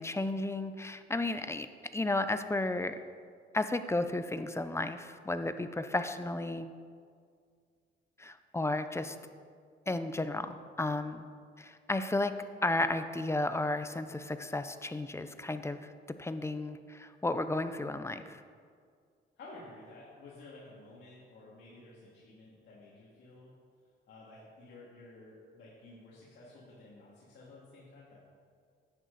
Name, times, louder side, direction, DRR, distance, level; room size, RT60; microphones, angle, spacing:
voice 1, 0.0-1.7 1.9-3.0 3.5-6.7 8.2-9.2 9.9-11.2 11.6-12.3 12.6-15.9 16.2-18.4, left 2 dB, 15° left, 10 dB, 0.6 m, -33 dB
voice 2, 19.4-23.5 24.1-28.2, left 2 dB, 60° left, -7 dB, 2.4 m, -53 dB
10.5 x 9.1 x 4.0 m, 2.1 s
cardioid pair, 90°, 20 cm